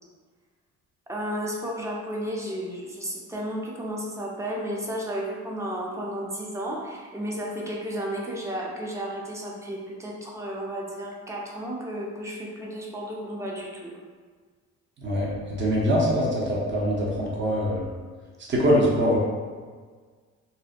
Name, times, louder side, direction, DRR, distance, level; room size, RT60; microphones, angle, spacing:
voice 1, 1.1-14.0, equal, 10° right, -2 dB, 0.5 m, -33 dB
voice 2, 15.6-17.9 18.5-19.2, equal, 40° right, -4 dB, 0.7 m, -23 dB
2.6 x 2.1 x 2.4 m, 1.5 s
cardioid pair, 90°, 30 cm